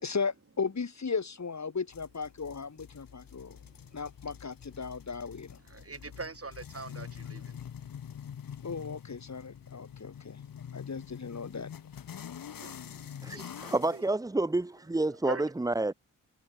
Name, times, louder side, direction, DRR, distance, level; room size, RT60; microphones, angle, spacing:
voice 1, 0.0-3.6 3.9-5.6 8.6-10.4 10.7-11.7, left 5 dB, 55° left, 3.4 m, -36 dB
sound 1, 1.9-14.0, left 8 dB, 90° left, 3.1 m, -46 dB
voice 2, 5.7-7.7 12.6-14.0 15.1-15.4, right 4 dB, 45° right, 5.1 m, -43 dB
voice 3, 13.2-15.9, right 2 dB, 10° right, 0.6 m, -29 dB
cardioid pair, 50°, 33 cm